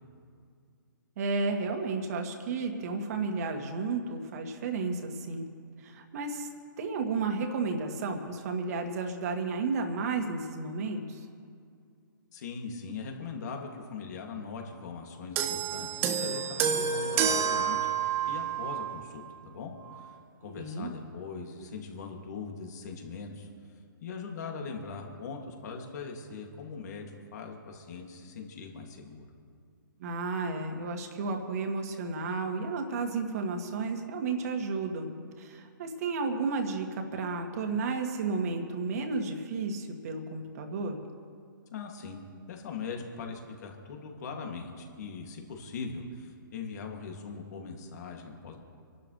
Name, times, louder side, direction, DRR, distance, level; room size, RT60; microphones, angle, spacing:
voice 1, 1.2-5.5 5.8-6.5 6.8-11.3 20.4-20.9 30.0-35.1 35.4-41.0, right 4 dB, 45° right, 3 dB, 2.1 m, -32 dB
voice 2, 12.3-20.1 20.4-23.5 24.0-29.3 41.7-42.2 42.5-48.6, left 4 dB, 50° left, 1 dB, 2.5 m, -41 dB
sound 1, 15.4-19.0 19.9-20.0, right 7 dB, 20° right, 0.7 m, -29 dB
26.5 x 12.0 x 3.3 m, 2.3 s
hypercardioid pair, 145°, 12 cm